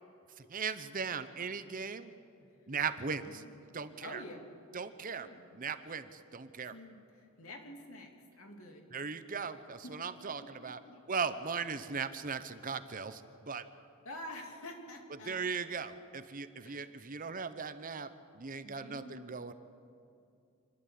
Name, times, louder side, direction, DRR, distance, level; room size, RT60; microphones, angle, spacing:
voice 1, 0.5-2.1 2.7-3.4 3.7-4.2 4.7-5.3 5.5-6.7 8.9-10.8 11.1-13.7 15.2-19.5, right 5 dB, 40° right, 11 dB, 0.8 m, -38 dB
voice 2, 3.2-3.5 4.0-4.4 5.1-5.5 6.7-8.9 9.8-9.9 10.4-11.0 14.0-15.5 16.6-16.9 18.6-19.2, left 1 dB, 75° left, 2 dB, 2.8 m, -48 dB
27.0 x 11.5 x 8.5 m, 2.5 s
head